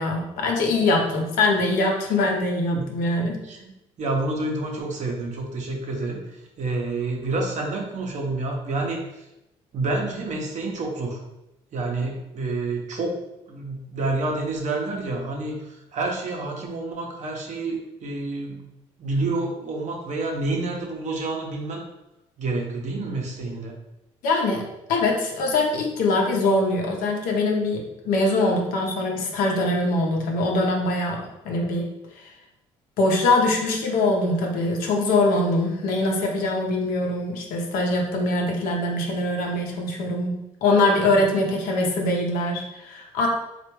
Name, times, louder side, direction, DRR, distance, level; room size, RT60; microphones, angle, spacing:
voice 1, 0.0-3.4 24.2-31.9 32.2-32.3 33.0-43.3, left 2 dB, 75° left, 1 dB, 0.7 m, -23 dB
voice 2, 3.4-9.3 9.7-11.2 11.7-13.2 13.5-18.6 19.0-21.8 22.4-23.8, right 2 dB, 55° right, 0 dB, 0.8 m, -28 dB
3.2 x 2.4 x 3.0 m, 0.89 s
hypercardioid pair, 60°, 15 cm